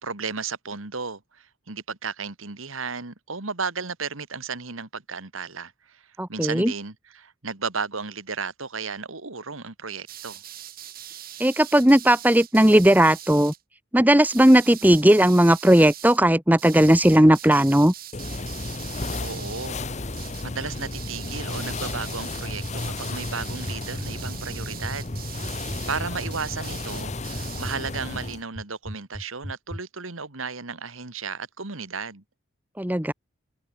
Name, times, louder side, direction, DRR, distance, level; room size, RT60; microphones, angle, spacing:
voice 1, 0.0-10.4 19.2-19.8 20.4-25.1 25.9-32.2, right 5 dB, 80° right, 2.1 m, -34 dB
voice 2, 6.2-6.7 11.4-13.5 13.9-17.9 32.8-33.1, right 1 dB, 10° right, 1.1 m, -17 dB
sound 1, 10.1-13.6 14.2-16.2 16.6-19.8 20.1-20.5 20.8-27.8, right 12 dB, 45° right, 7.7 m, -42 dB
sound 2, 18.1-28.4, left 2 dB, 35° left, 1.2 m, -33 dB
sound 3, 21.4-29.8, equal, 15° left, 7.6 m, -37 dB
head